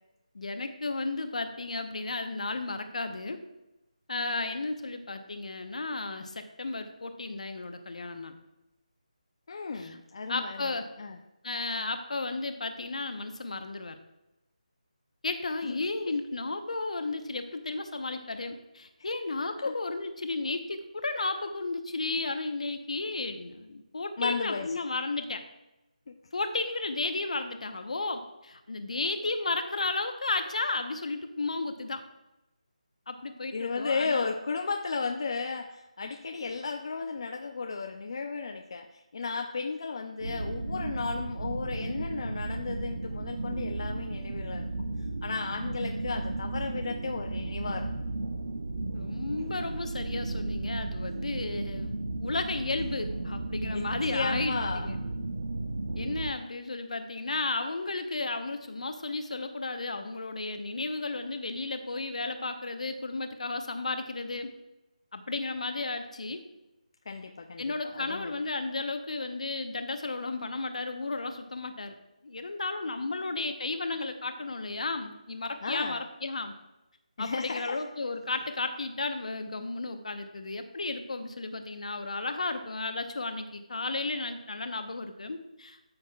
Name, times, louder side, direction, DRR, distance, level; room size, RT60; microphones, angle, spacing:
voice 1, 0.3-3.4 4.1-8.3 9.7-10.0 10.3-10.9 11.4-14.0 15.2-25.4 26.3-32.0 33.1-34.3 48.9-52.0 52.2-55.0 56.0-64.5 65.1-66.4 67.6-71.9 72.2-76.5 77.2-85.9, left 3 dB, 65° left, 8 dB, 0.9 m, -33 dB
voice 2, 9.5-11.2 19.6-19.7 24.2-24.8 26.1-26.2 33.5-44.6 45.2-47.9 49.4-49.5 52.3-52.4 53.7-53.8 54.1-54.9 67.1-68.3 75.6-76.0 77.2-77.8, left 4 dB, 40° left, 4 dB, 0.5 m, -34 dB
sound 1, 40.2-56.3, right 2 dB, 75° right, 0.7 m, -34 dB
13.0 x 6.4 x 2.4 m, 0.93 s
figure-of-eight pair, 170°, 4 cm